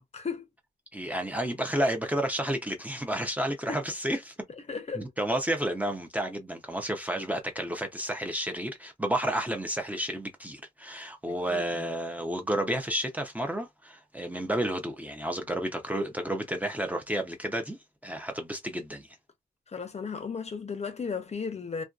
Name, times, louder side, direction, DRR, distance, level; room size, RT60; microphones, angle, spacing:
voice 1, 0.1-0.5 3.7-3.8 4.7-5.1 11.5-11.9 19.7-21.8, left 5 dB, 40° left, 0.5 m, -35 dB
voice 2, 0.9-4.3 4.9-17.8 18.0-19.1, right 1 dB, 10° right, 0.5 m, -31 dB
2.5 x 2.2 x 2.3 m
wide cardioid pair, 115°, 17 cm